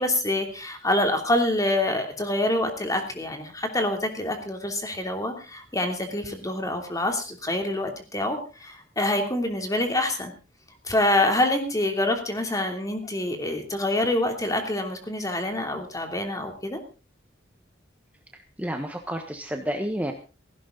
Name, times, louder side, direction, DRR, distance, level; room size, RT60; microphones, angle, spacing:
voice 1, 0.0-10.3 10.8-16.8, left 1 dB, 20° left, 4 dB, 3.1 m, -26 dB
voice 2, 18.3-20.1, equal, 10° right, 4 dB, 1.3 m, -30 dB
17.0 x 15.5 x 4.0 m, 0.34 s
head